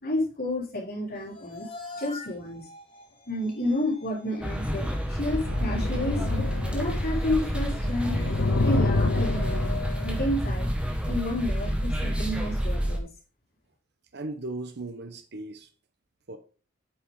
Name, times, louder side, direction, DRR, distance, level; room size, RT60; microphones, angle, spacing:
voice 1, 0.0-1.7 2.0-2.7 3.3-6.5 6.7-8.2 8.6-10.7 11.0-13.1, left 1 dB, 50° left, 3.8 m, -30 dB
sound 1, 1.1-11.3, left 1 dB, 35° left, 5.1 m, -44 dB
sound 2, 4.4-13.0, equal, 5° right, 1.6 m, -29 dB
sound 3, 5.2-7.4 7.7-10.4 11.3-11.5, left 3 dB, 65° left, 0.6 m, -29 dB
voice 2, 14.1-15.7 16.3-16.4, right 2 dB, 55° right, 0.9 m, -37 dB
8.9 x 7.0 x 3.7 m
head